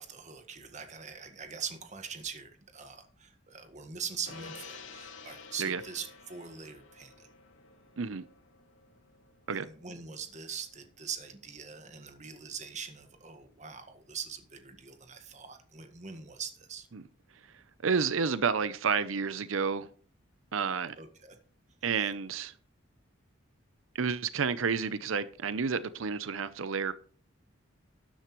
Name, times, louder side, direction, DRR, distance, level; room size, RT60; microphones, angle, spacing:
voice 1, 0.0-7.3 9.5-16.9 21.0-21.4 22.0-22.1, right 6 dB, 35° right, 1.6 m, -42 dB
Gong, 4.2-10.9 11.2-11.3, left 4 dB, 75° left, 2.5 m, -51 dB
voice 2, 17.5-19.9 20.5-21.0 21.8-22.5 23.9-26.9, right 5 dB, 90° right, 0.6 m, -30 dB
12.5 x 10.0 x 3.1 m
head